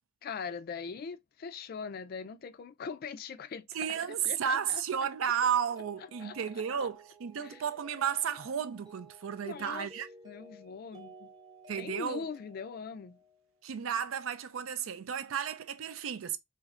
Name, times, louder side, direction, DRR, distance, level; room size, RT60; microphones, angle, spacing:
voice 1, 0.2-3.7 4.2-5.1 6.2-6.9 7.4-7.6 9.4-9.9 10.2-11.3 11.8-13.2, left 5 dB, 50° left, 0.3 m, -41 dB
voice 2, 3.7-10.1 11.7-12.2 13.6-16.4, right 8 dB, 90° right, 0.4 m, -33 dB
Mallet percussion, 5.4-13.6, equal, 20° right, 0.7 m, -55 dB
3.2 x 2.8 x 2.4 m
head